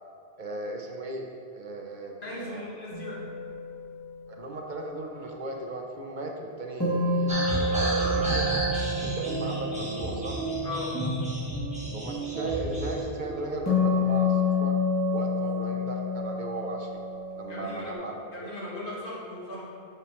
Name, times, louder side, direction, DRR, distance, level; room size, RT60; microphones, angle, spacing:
voice 1, 0.4-1.3 1.5-2.6 4.3-8.5 9.0-10.4 11.9-14.7 15.1-16.9 17.4-18.5, right 2 dB, 50° right, 1 dB, 0.8 m, -36 dB
voice 2, 2.2-3.3 10.6-10.9 17.5-18.0 18.3-19.7, left 2 dB, 50° left, -6 dB, 1.7 m, -37 dB
sound 1, 2.9-4.3 6.8-11.2 13.7-17.9, left 3 dB, 15° left, 1.7 m, -29 dB
sound 2, 6.9-14.5, right 3 dB, 75° right, 1.1 m, -38 dB
sound 3, 7.3-13.0, equal, 5° right, 1.5 m, -32 dB
7.2 x 6.7 x 3.1 m, 2.6 s
omnidirectional pair, 1.1 m